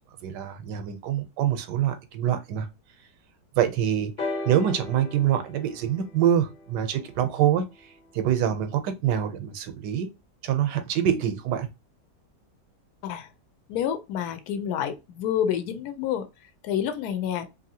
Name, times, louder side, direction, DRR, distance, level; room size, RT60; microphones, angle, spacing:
voice 1, 0.2-2.7 3.6-7.6 8.1-10.1 10.4-11.7, right 10 dB, 85° right, 1.2 m, -25 dB
sound 1, 4.2-8.0 8.9-9.0, left 2 dB, 40° left, 0.7 m, -37 dB
voice 2, 13.7-16.3 16.6-17.5, left 9 dB, 75° left, 1.0 m, -28 dB
2.8 x 2.6 x 2.7 m
omnidirectional pair, 1.8 m